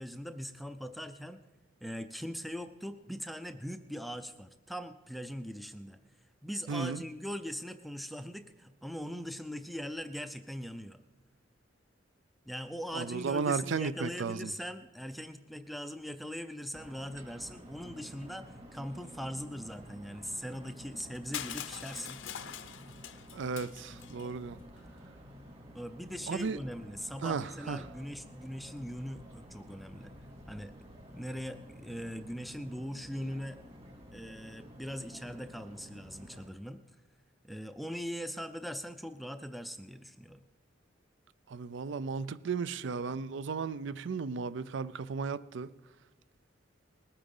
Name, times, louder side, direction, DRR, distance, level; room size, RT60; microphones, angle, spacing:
voice 1, 0.0-1.4 1.8-6.0 6.4-11.0 12.5-22.2 25.7-30.1 30.5-30.7 31.1-33.6 34.1-36.8 37.4-40.4, equal, ahead, 0.4 m, -41 dB
voice 2, 6.7-7.0 12.9-14.5 23.3-24.6 26.3-26.6 27.2-27.8 41.5-45.7, right 5 dB, 65° right, 0.5 m, -34 dB
sound 1, 16.7-36.5, equal, 30° right, 2.3 m, -51 dB
Crushing, 21.3-24.3, left 10 dB, 75° left, 0.7 m, -43 dB
20.0 x 8.8 x 5.4 m
head